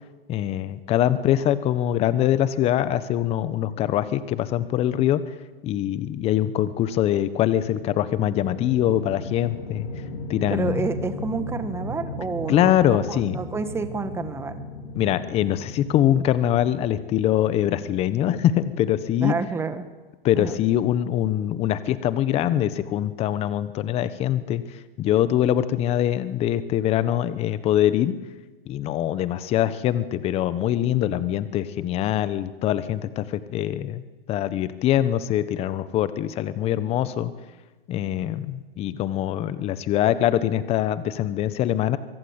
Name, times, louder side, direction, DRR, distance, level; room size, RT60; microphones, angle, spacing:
voice 1, 0.3-5.2 5.6-9.9 10.3-10.9 12.5-13.4 15.0-19.3 20.2-24.6 25.0-28.2 28.7-34.0 34.3-37.3 37.9-42.0, left 12 dB, 20° left, 15 dB, 1.1 m, -23 dB
sound 1, 7.5-19.8, left 1 dB, 70° left, 4.9 m, -37 dB
voice 2, 10.5-14.6 19.2-19.9 20.3-20.5, right 4 dB, 10° right, 10 dB, 1.6 m, -29 dB
25.0 x 24.0 x 8.2 m, 1.2 s
hypercardioid pair, 145°, 31 cm